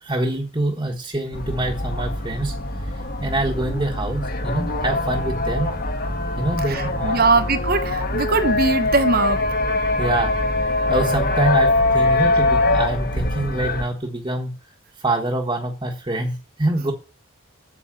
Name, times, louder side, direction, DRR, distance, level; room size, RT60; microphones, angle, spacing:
voice 1, 0.0-2.6 2.9-5.7 6.4-7.3 10.0-10.3 10.9-14.6 15.0-16.9, right 1 dB, 20° right, 0 dB, 1.3 m, -25 dB
sound 1, 1.3-13.9, left 2 dB, 45° left, 1.6 m, -23 dB
voice 2, 6.7-9.4, right 3 dB, 45° right, 10 dB, 1.3 m, -20 dB
8.5 x 7.1 x 7.7 m, 0.33 s
head